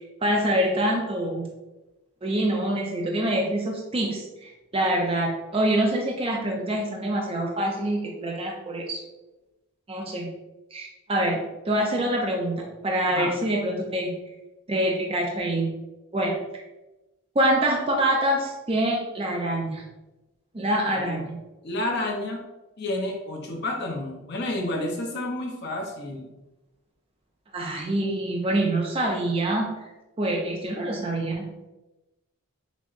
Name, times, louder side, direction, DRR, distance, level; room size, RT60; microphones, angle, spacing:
voice 1, 0.2-1.5 2.2-9.0 9.9-10.3 10.7-14.1 14.7-15.7 16.1-16.4 17.4-19.8 20.5-21.4 27.5-29.7 30.2-31.7, right 1 dB, 25° right, 0 dB, 0.4 m, -25 dB
voice 2, 21.6-22.4 22.8-26.3, left 1 dB, 50° left, 1 dB, 0.7 m, -30 dB
6.0 x 2.0 x 2.5 m, 1.0 s
head